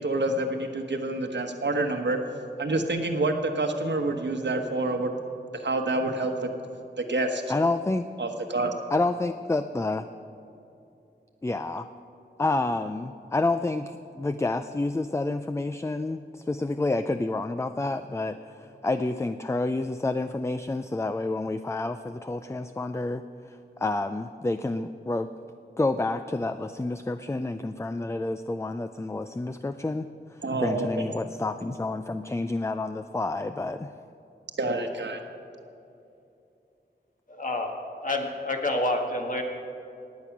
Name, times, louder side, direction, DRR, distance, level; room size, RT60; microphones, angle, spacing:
voice 1, 0.0-2.2 2.6-5.1 5.5-6.5 6.9-7.4 8.2-8.7 30.4-30.9 34.6-35.2, right 2 dB, 75° right, 4 dB, 1.3 m, -27 dB
voice 2, 7.5-8.1 8.9-10.0 11.4-11.9 12.4-25.3 25.8-33.9, left 2 dB, 15° left, 9 dB, 0.4 m, -29 dB
voice 3, 37.3-37.7 38.0-39.4, left 1 dB, 45° left, 2 dB, 1.8 m, -28 dB
19.0 x 8.5 x 6.0 m, 2.8 s
wide cardioid pair, 80°, 19 cm